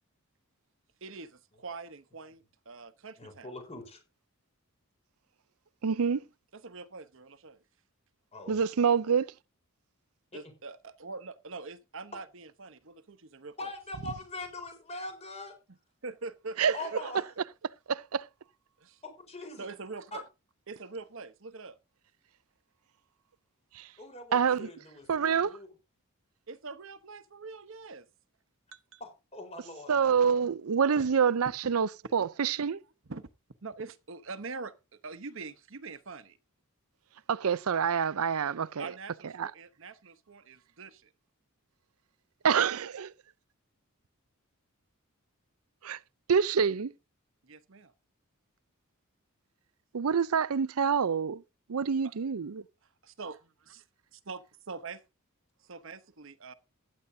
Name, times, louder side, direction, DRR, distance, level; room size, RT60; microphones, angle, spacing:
voice 1, 1.0-3.5 6.5-7.6 10.3-13.7 16.0-17.2 18.8-19.0 19.6-20.2 20.7-21.8 26.5-28.1 28.7-29.0 30.9-31.1 32.3-32.7 33.0-33.3 33.6-36.4 38.8-41.1 47.4-47.9 52.0-52.1 53.0-53.4 53.7-53.8 54.3-55.0 55.7-56.5, right 4 dB, 60° right, 1.0 m, -44 dB
voice 2, 3.2-4.0 8.3-8.6 10.3-10.4 13.6-15.5 16.7-17.2 19.3-19.7 20.1-20.2 24.0-25.7 29.0-29.9, left 2 dB, 30° left, 4.4 m, -42 dB
voice 3, 5.8-6.2 8.5-9.3 16.6-16.7 17.9-18.2 23.8-23.9 24.3-24.7 25.1-25.5 29.9-32.8 37.3-38.9 39.4-39.5 42.4-43.1 45.8-46.0 46.3-46.9 49.9-51.4 51.7-52.6, right 6 dB, 80° right, 0.5 m, -26 dB
15.5 x 10.5 x 2.7 m
head